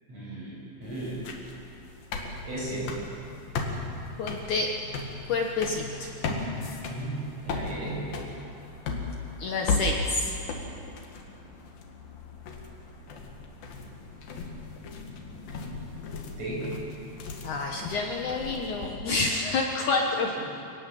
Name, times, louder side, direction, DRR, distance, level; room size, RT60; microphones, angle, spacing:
voice 1, 0.1-1.2 2.4-2.9 6.8-8.1 16.4-16.7, right 2 dB, 30° right, -5 dB, 8.9 m, -35 dB
sound 1, 0.8-19.3, left 3 dB, 55° left, 3.3 m, -36 dB
voice 2, 4.2-4.7 5.3-6.1 6.5-6.8 9.4-10.3 17.4-20.3, left 3 dB, 80° left, 0 dB, 1.7 m, -28 dB
25.5 x 19.0 x 7.7 m, 2.6 s
omnidirectional pair, 5.7 m